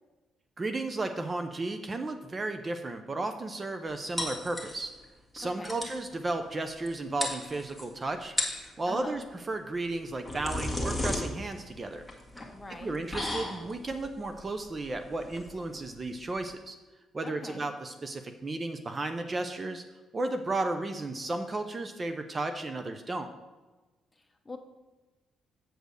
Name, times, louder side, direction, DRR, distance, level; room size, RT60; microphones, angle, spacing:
voice 1, 0.6-4.9 5.3-8.3 8.8-12.1 12.8-16.8 17.1-19.8 20.1-23.3, right 2 dB, 30° right, 7 dB, 0.6 m, -34 dB
sound 1, 4.2-5.0 5.4-5.5 5.6-6.0 6.9-7.0 7.2-7.9 8.2-8.7 9.9-16.5, left 1 dB, ahead, 1.9 m, -35 dB
voice 2, 5.4-5.8 8.9-9.2 12.5-13.0 17.2-17.7 24.2-24.6, left 3 dB, 15° left, 4 dB, 1.1 m, -43 dB
7.7 x 5.2 x 6.5 m, 1.2 s
cardioid pair, 90°, 0 cm